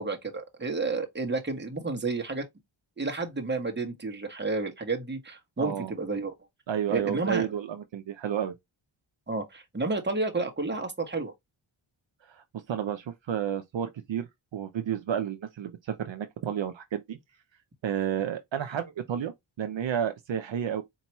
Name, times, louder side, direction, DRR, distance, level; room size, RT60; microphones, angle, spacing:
voice 1, 0.0-2.4 3.0-6.3 6.9-7.5 9.3-11.3, right 3 dB, 20° right, 1.2 m, -31 dB
voice 2, 5.6-5.9 6.7-8.5 12.3-14.3 14.5-17.2 17.8-20.8, right 9 dB, 70° right, 0.7 m, -31 dB
4.5 x 2.9 x 2.9 m
wide cardioid pair, 70°, 47 cm